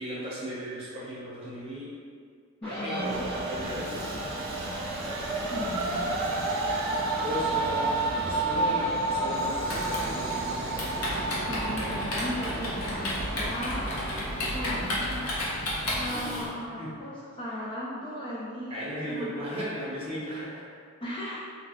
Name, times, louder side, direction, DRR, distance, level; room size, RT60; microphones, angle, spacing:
voice 1, 0.0-1.9 2.7-4.5 7.2-10.6 14.5-14.9 16.8-16.9 18.7-20.7, equal, 30° right, -7 dB, 0.8 m, -36 dB
sound 1, 2.6-4.0, right 1 dB, 50° left, 1.5 m, -38 dB
voice 2, 2.6-3.2 5.5-6.2 11.5-13.9 14.4-19.4 21.0-21.4, equal, 25° left, -6 dB, 0.4 m, -37 dB
Train, 2.9-16.4, right 2 dB, 85° right, 0.5 m, -31 dB
Typing, 9.6-16.5, left 1 dB, 85° left, 0.8 m, -33 dB
3.0 x 2.7 x 2.9 m, 2.1 s
head